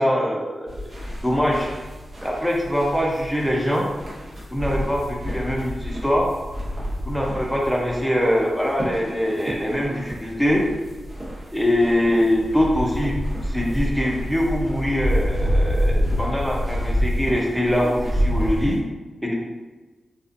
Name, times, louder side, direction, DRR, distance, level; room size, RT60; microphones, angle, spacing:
voice 1, 0.0-1.7 2.2-3.9 4.5-6.3 7.0-10.6 11.5-13.1 13.4-18.8 19.2-19.3, equal, ahead, -2 dB, 0.6 m, -23 dB
sound 1, 0.7-18.8, equal, 55° right, 1.0 m, -28 dB
2.5 x 2.4 x 2.5 m, 1.2 s
cardioid pair, 45°, 0 cm